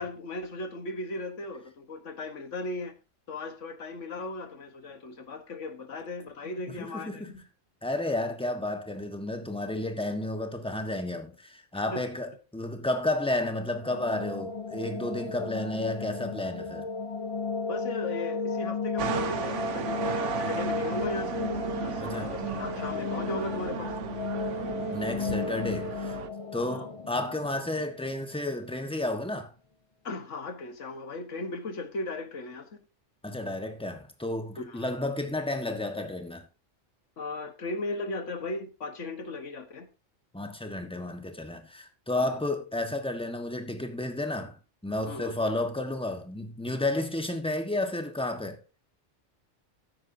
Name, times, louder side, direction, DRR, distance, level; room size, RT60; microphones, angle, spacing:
voice 1, 0.0-2.9 3.3-7.4 11.9-12.1 17.7-21.5 21.8-24.0 26.5-26.9 30.0-32.7 34.6-34.9 37.2-39.9 42.1-42.4 45.1-45.3, left 2 dB, 90° left, 1.7 m, -37 dB
voice 2, 6.8-7.3 7.8-16.9 22.0-22.3 24.9-26.2 26.5-29.5 33.2-36.4 40.3-44.5 44.8-48.6, left 2 dB, 5° left, 1.4 m, -32 dB
sound 1, 13.6-28.5, left 4 dB, 40° left, 0.6 m, -34 dB
sound 2, 19.0-26.3, right 9 dB, 80° right, 1.1 m, -35 dB
13.5 x 9.6 x 2.8 m
omnidirectional pair, 1.2 m